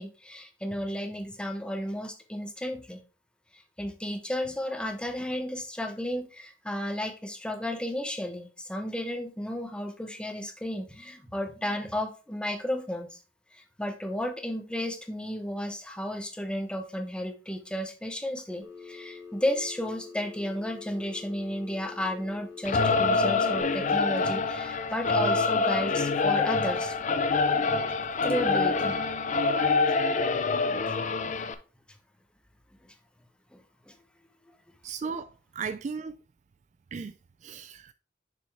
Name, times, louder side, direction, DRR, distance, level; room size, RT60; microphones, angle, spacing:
voice 1, 0.0-3.0 3.5-13.2 13.5-27.0 28.2-29.0 33.5-33.9, left 1 dB, 5° left, 0.8 m, -33 dB
Telephone, 18.6-23.6, left 5 dB, 15° right, 1.7 m, -45 dB
Singing / Musical instrument, 22.6-31.5, left 4 dB, 40° left, 0.5 m, -26 dB
voice 2, 34.8-36.1 36.9-37.1 37.4-37.9, right 5 dB, 40° right, 0.3 m, -36 dB
6.7 x 5.2 x 3.3 m
head